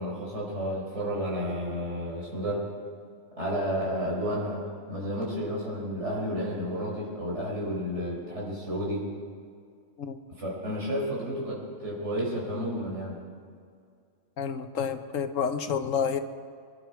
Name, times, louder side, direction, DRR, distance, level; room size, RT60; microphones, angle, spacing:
voice 1, 0.0-2.7 3.4-4.6 4.9-9.1 10.3-13.2, equal, 60° right, -4 dB, 4.9 m, -31 dB
voice 2, 14.4-16.2, left 7 dB, 80° left, 9 dB, 1.3 m, -29 dB
24.0 x 11.5 x 4.7 m, 2.2 s
omnidirectional pair, 1.3 m